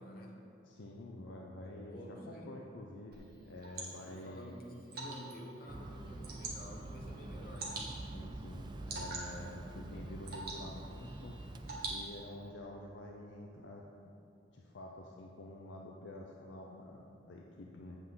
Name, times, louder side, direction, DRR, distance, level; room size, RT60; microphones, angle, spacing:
voice 1, 0.0-0.4 1.6-2.6 4.1-7.9 9.3-9.7 9.9-10.3, equal, 50° left, -1 dB, 1.2 m, -50 dB
voice 2, 0.6-2.0 2.3-4.5 8.1-11.4 11.8-13.9 14.5-18.0, left 1 dB, 75° left, -1 dB, 0.6 m, -48 dB
Water / Drip, 3.1-12.5, right 2 dB, 55° right, 1.5 m, -47 dB
sound 1, 5.7-12.0, right 2 dB, 25° right, 0.4 m, -46 dB
8.1 x 8.1 x 3.7 m, 2.6 s
head